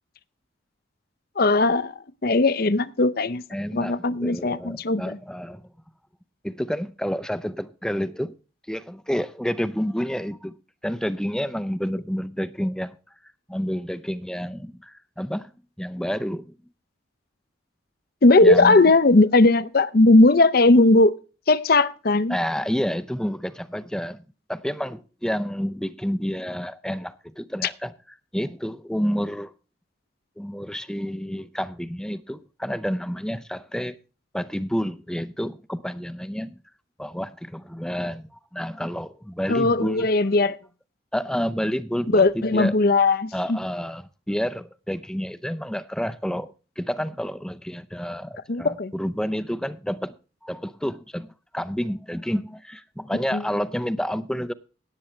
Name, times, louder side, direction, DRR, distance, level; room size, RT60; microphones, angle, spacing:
voice 1, 1.4-1.9 2.2-3.4 3.7-5.2 18.2-21.2 21.5-22.4 39.5-40.6 42.1-43.6 48.5-48.9 53.3-53.4, left 2 dB, 50° left, 0.7 m, -18 dB
voice 2, 3.5-5.7 6.4-8.4 8.7-10.6 10.8-13.0 13.5-15.5 15.8-16.5 18.4-18.9 22.3-24.2 24.5-27.9 28.3-29.5 30.4-34.0 34.3-36.6 37.0-40.1 41.1-42.8 43.3-50.1 50.4-54.5, equal, 5° left, 0.5 m, -29 dB
17.5 x 8.4 x 3.2 m
head